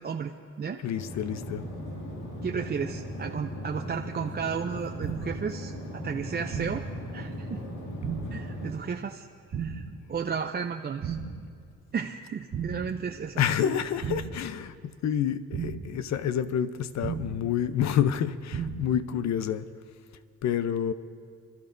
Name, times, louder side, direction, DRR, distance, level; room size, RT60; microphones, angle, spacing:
voice 1, 0.0-0.8 2.4-6.8 7.1-7.6 8.3-11.2 11.9-13.4, right 6 dB, 35° right, 3 dB, 0.6 m, -33 dB
voice 2, 0.8-1.7 13.4-19.7 20.4-20.9, left 9 dB, 65° left, 13 dB, 0.7 m, -28 dB
sound 1, 0.9-8.7, equal, 85° left, 2.4 m, -38 dB
sound 2, 5.0-5.5 6.5-7.0 8.0-8.5 9.5-10.0 11.0-11.5 12.5-13.0 14.0-14.5 15.5-16.0 17.0-17.5 18.5-19.0, right 6 dB, 75° right, 1.9 m, -34 dB
27.5 x 12.5 x 2.6 m, 2.3 s
cardioid pair, 90°, 30 cm